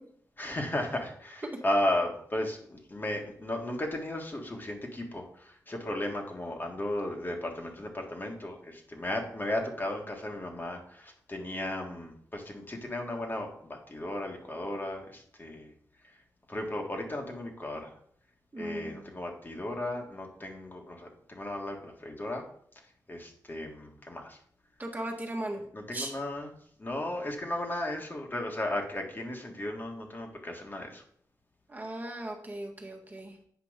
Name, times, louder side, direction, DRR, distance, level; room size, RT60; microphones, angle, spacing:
voice 1, 0.4-15.7 16.5-17.9 18.6-22.5 23.1-24.4 25.7-26.5 26.8-31.0, left 1 dB, 30° left, 1 dB, 1.8 m, -35 dB
voice 2, 18.5-19.1 24.8-25.6 25.9-26.1 31.7-33.4, right 1 dB, 25° right, 0 dB, 1.6 m, -37 dB
8.5 x 5.1 x 5.1 m, 0.62 s
cardioid pair, 80°, 7 cm